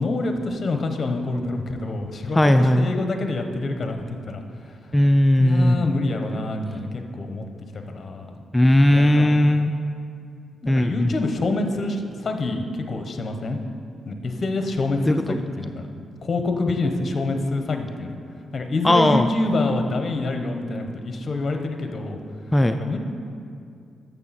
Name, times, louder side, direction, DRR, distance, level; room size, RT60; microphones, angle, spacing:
voice 1, 0.0-4.4 5.4-7.5 7.7-8.4 8.9-9.4 10.6-13.6 14.1-15.8 16.2-18.1 18.5-22.2 22.8-23.0, left 2 dB, 40° left, 5 dB, 1.0 m, -26 dB
voice 2, 2.3-2.9 4.9-5.9 8.5-9.7 10.7-11.1 15.0-15.4 18.8-19.3 22.5-22.8, left 1 dB, 15° left, 8 dB, 0.3 m, -17 dB
12.0 x 7.0 x 4.2 m, 2.4 s
cardioid pair, 95°, 0 cm